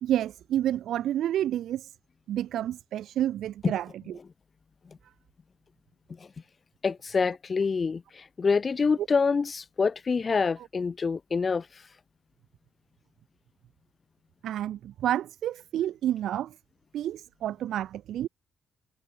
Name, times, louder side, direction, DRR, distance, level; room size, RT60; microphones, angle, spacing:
voice 1, 0.0-1.9 2.3-3.9 14.4-16.5 16.9-18.3, right 11 dB, 80° right, 0.5 m, -29 dB
voice 2, 6.8-11.7, left 5 dB, 35° left, 0.4 m, -26 dB
cardioid pair, 120°, 0 cm